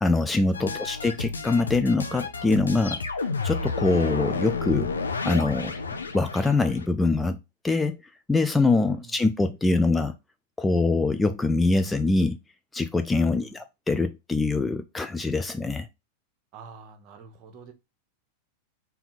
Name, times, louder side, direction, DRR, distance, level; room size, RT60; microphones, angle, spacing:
voice 1, 0.0-3.0 3.4-4.9 5.2-5.7 6.1-7.4 7.6-8.0 8.3-10.1 10.6-12.4 12.7-15.9, left 3 dB, 10° left, 0.3 m, -24 dB
sound 1, 0.5-6.9, left 4 dB, 75° left, 0.6 m, -31 dB
voice 2, 0.5-0.9 8.8-9.2 13.2-13.6 16.5-17.7, right 5 dB, 40° right, 1.0 m, -47 dB
4.3 x 2.7 x 3.9 m
figure-of-eight pair, 90°, 0 cm